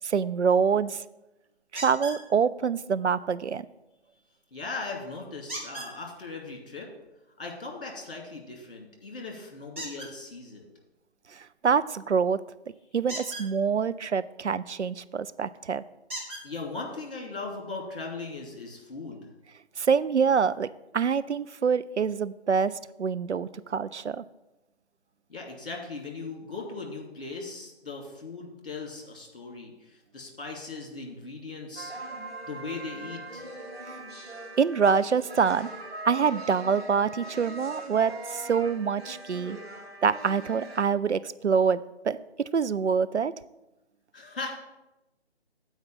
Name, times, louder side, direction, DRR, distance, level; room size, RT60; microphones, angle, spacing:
voice 1, 0.0-1.0 1.7-3.7 11.3-12.4 12.9-15.8 19.8-20.7 20.9-24.2 34.6-35.7 36.0-39.6 40.0-41.8 42.0-43.3, right 6 dB, 90° right, 15 dB, 0.5 m, -25 dB
sound 1, 1.8-2.2 5.5-5.9 9.7-10.1 13.0-13.5 15.1-15.2 16.1-16.4 17.4-17.5 18.0-18.1, right 1 dB, 10° right, 0.9 m, -37 dB
voice 2, 4.5-6.9 7.4-10.6 16.4-19.3 25.3-31.9 32.5-33.5 44.1-44.6, left 3 dB, 55° left, 0 dB, 2.7 m, -38 dB
sound 2, 31.8-40.8, right 2 dB, 65° right, 1.9 m, -41 dB
8.1 x 4.9 x 7.2 m, 0.96 s
figure-of-eight pair, 150°, 34 cm